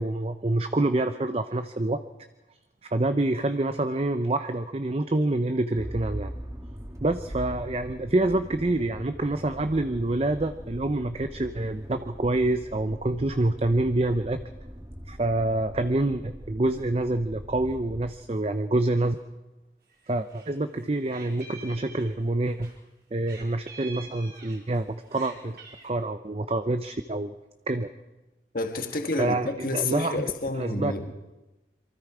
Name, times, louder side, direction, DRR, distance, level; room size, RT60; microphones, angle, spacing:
voice 1, 0.0-2.0 2.8-6.3 7.0-14.4 15.1-19.2 20.1-22.7 23.1-25.6 25.8-27.3 27.7-27.9 29.2-30.2 30.5-30.9, right 2 dB, 35° right, 9 dB, 0.6 m, -27 dB
Motor vehicle (road), 5.7-18.1, equal, 20° right, 2.2 m, -41 dB
Meow, 19.9-20.5 20.8-22.7 23.3-24.8 25.1-25.9, right 4 dB, 55° right, 5.1 m, -46 dB
voice 2, 28.5-31.1, left 2 dB, 50° left, 5 dB, 1.6 m, -29 dB
26.5 x 23.5 x 4.9 m, 1.1 s
head